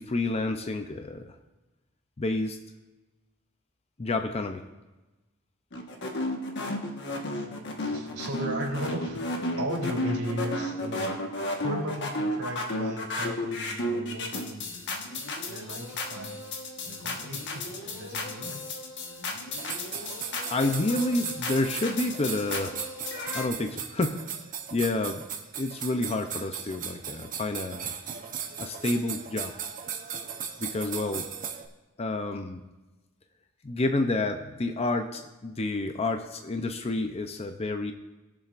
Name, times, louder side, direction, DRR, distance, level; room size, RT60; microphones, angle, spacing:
voice 1, 0.0-1.3 2.2-2.6 4.0-4.6 20.5-22.8 23.3-24.3 24.7-25.3 25.6-28.0 28.6-29.5 30.6-31.3 32.0-32.6 33.6-37.9, left 2 dB, 30° left, 6 dB, 0.6 m, -29 dB
sound 1, 5.7-23.5, left 2 dB, 55° left, 1.4 m, -33 dB
voice 2, 7.9-11.2 11.6-14.8 15.1-15.2 15.5-16.6 16.8-18.6, right 1 dB, 85° right, -2 dB, 3.0 m, -36 dB
sound 2, 19.5-31.7, right 7 dB, 40° right, 0.9 m, -37 dB
21.0 x 7.2 x 2.5 m, 1.1 s
head